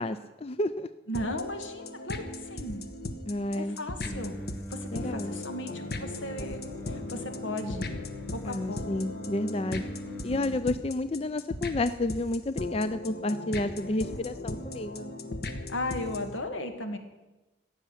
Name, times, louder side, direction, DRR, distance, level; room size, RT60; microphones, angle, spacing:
voice 1, 0.0-0.9 3.3-3.8 4.9-5.3 8.4-9.8 10.2-15.1, left 2 dB, 30° left, 12 dB, 0.4 m, -30 dB
voice 2, 1.1-2.8 3.5-4.4 4.7-6.6 6.9-7.9 8.3-8.8 15.7-17.0, left 1 dB, 85° left, 6 dB, 2.0 m, -36 dB
sound 1, 1.1-16.4, left 2 dB, 55° left, 1.2 m, -38 dB
Singing, 4.0-10.6, left 1 dB, 10° left, 1.5 m, -41 dB
16.0 x 7.0 x 10.0 m, 1.1 s
head